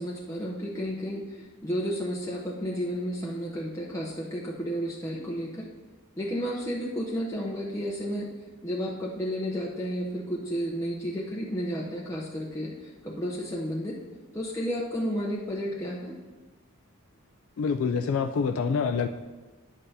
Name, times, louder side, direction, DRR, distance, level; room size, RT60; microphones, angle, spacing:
voice 1, 0.0-5.7 6.2-8.3 8.6-14.0 14.3-16.2, equal, 15° left, -4 dB, 0.6 m, -32 dB
voice 2, 17.6-19.1, left 5 dB, 60° left, 7 dB, 0.3 m, -26 dB
9.7 x 7.7 x 2.7 m, 1.2 s
head